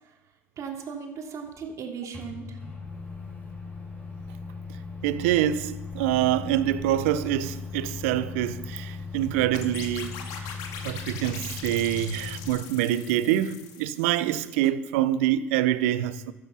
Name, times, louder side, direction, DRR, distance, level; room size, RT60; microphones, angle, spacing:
voice 1, 0.6-2.6, right 6 dB, 50° right, 3.0 m, -37 dB
Microwave oven, 2.1-12.5, left 4 dB, 20° left, 5.9 m, -38 dB
voice 2, 5.0-10.1 10.8-16.3, right 12 dB, 75° right, 0.8 m, -25 dB
sound 1, 9.5-14.4, left 7 dB, 65° left, 2.1 m, -41 dB
13.0 x 12.5 x 5.7 m
hypercardioid pair, 65°, 7 cm